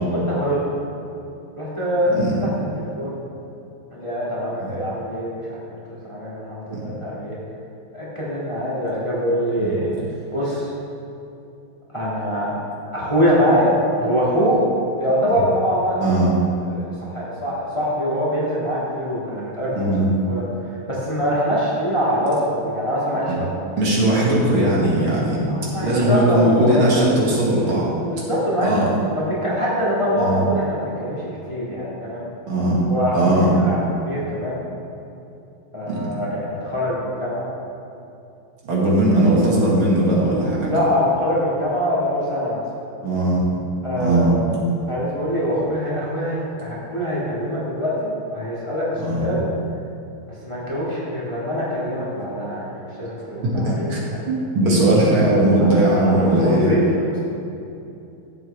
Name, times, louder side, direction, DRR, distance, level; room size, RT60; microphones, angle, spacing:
voice 1, 0.1-0.6 1.6-3.2 3.9-5.6 5.9-7.4 7.9-10.0 10.3-10.7 11.9-12.6 12.9-14.6 15.0-16.3 16.6-23.6 25.5-27.0 28.1-32.3 32.9-34.6 35.7-37.5 40.2-40.4 40.6-42.6 43.8-49.5 50.4-54.2 55.6-57.2, equal, 15° left, -8 dB, 1.9 m, -24 dB
voice 2, 19.8-20.1 23.3-23.4 23.8-25.4 25.8-27.9 28.6-28.9 30.2-30.4 32.5-32.8 33.1-33.5 35.9-36.0 38.6-40.7 43.0-43.4 44.0-44.3 49.0-49.3 53.4-53.5 53.9-54.0 54.3-56.7, right 1 dB, 70° right, -6 dB, 2.8 m, -18 dB
14.0 x 7.8 x 3.3 m, 2.7 s
omnidirectional pair, 2.3 m